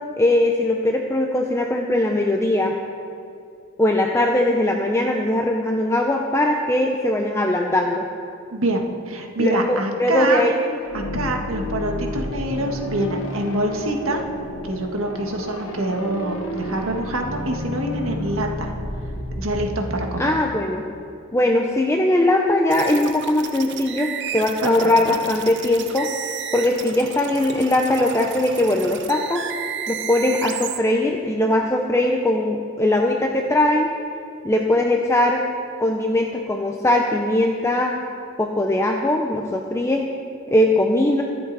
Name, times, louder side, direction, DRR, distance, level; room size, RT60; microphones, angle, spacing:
voice 1, 0.2-2.8 3.8-8.0 9.4-10.5 20.2-20.8 21.3-26.1 26.5-29.4 29.9-33.9 34.4-35.4 35.8-37.9 38.4-40.1 40.5-41.2, left 1 dB, 15° left, 1 dB, 0.6 m, -20 dB
voice 2, 8.5-10.5 10.9-14.2 14.7-18.7 19.3-20.3 24.6-25.2, right 1 dB, 70° right, 2 dB, 1.6 m, -25 dB
sound 1, 10.8-20.5, left 1 dB, 80° left, 1.5 m, -31 dB
sound 2, 22.7-30.8, right 8 dB, 55° right, 0.8 m, -33 dB
23.5 x 7.8 x 4.1 m, 2.6 s
head